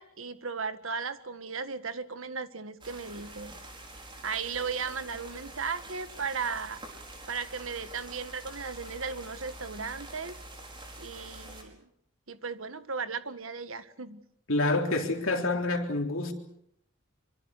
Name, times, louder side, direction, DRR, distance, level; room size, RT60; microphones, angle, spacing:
voice 1, 0.0-3.5 4.2-6.8 7.3-10.3 11.0-11.8 12.3-14.2, right 5 dB, 70° right, 1.6 m, -36 dB
sound 1, 2.8-11.6, right 2 dB, 25° right, 5.0 m, -46 dB
voice 2, 14.5-16.3, left 2 dB, 70° left, 3.7 m, -27 dB
25.5 x 24.5 x 6.6 m
head